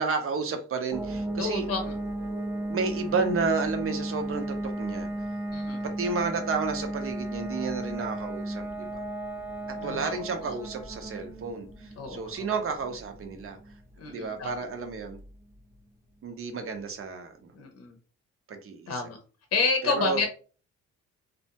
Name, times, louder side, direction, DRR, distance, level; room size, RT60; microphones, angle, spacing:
voice 1, 0.0-1.6 2.7-5.1 5.8-9.0 9.8-13.6 14.0-15.2 16.2-17.3 18.5-19.0 19.8-20.3, right 4 dB, 45° right, 6 dB, 0.7 m, -31 dB
sound 1, 0.9-15.5, right 1 dB, 10° right, 0.5 m, -35 dB
voice 2, 1.4-1.9 5.5-5.8 9.8-10.2 10.4-10.5 12.0-12.5 14.0-14.6 17.5-18.0 18.9-19.2 19.5-20.3, left 4 dB, 50° left, 4 dB, 0.7 m, -30 dB
2.4 x 2.1 x 2.8 m, 0.38 s
cardioid pair, 90°, 30 cm